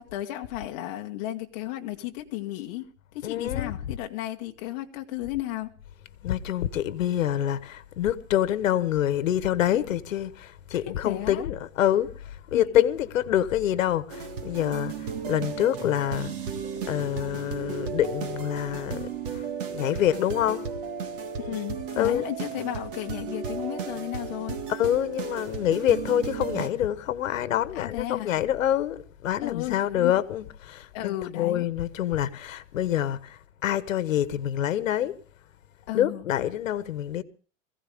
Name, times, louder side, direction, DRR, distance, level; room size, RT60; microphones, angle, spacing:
voice 1, 0.0-2.8 3.1-5.7 10.7-11.4 12.5-12.7 21.4-24.6 27.7-28.3 29.4-30.1 30.9-31.6 35.9-36.2, left 15 dB, 30° left, 1.6 m, -34 dB
voice 2, 3.2-3.7 6.2-16.3 16.9-19.4 19.7-20.6 22.0-22.3 24.7-35.2 35.9-37.2, left 11 dB, 85° left, 1.3 m, -26 dB
sound 1, 14.1-26.7, right 6 dB, 45° right, 1.9 m, -35 dB
22.0 x 16.0 x 3.5 m
supercardioid pair, 175°, 39 cm